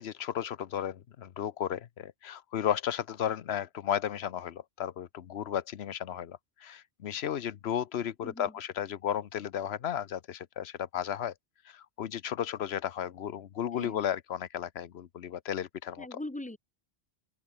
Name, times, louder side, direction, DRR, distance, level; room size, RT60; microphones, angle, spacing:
voice 1, 0.0-11.3 11.7-16.1, left 9 dB, 85° left, 1.0 m, -34 dB
voice 2, 8.2-8.5 13.7-14.0 16.0-16.6, left 1 dB, 10° left, 1.1 m, -41 dB
open air
omnidirectional pair, 1.0 m